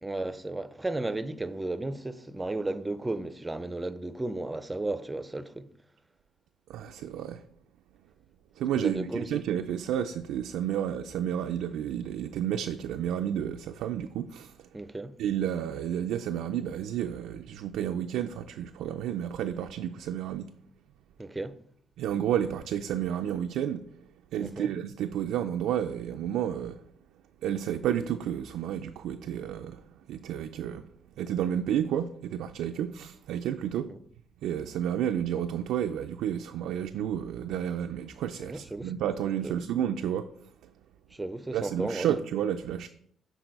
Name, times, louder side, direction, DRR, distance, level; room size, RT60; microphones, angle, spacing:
voice 1, 0.0-5.7 8.7-9.4 14.7-15.1 21.2-21.6 24.4-24.7 33.9-34.0 38.4-38.9 39.4-39.6 41.1-42.1, right 2 dB, 15° right, 0.5 m, -34 dB
voice 2, 6.7-7.4 8.6-14.6 15.2-20.5 22.0-23.8 24.3-26.8 27.4-29.8 30.1-30.8 31.2-33.9 34.4-40.3 40.6-40.7 41.5-42.9, right 10 dB, 85° right, 0.3 m, -31 dB
6.1 x 4.1 x 5.2 m
cardioid pair, 90°, 0 cm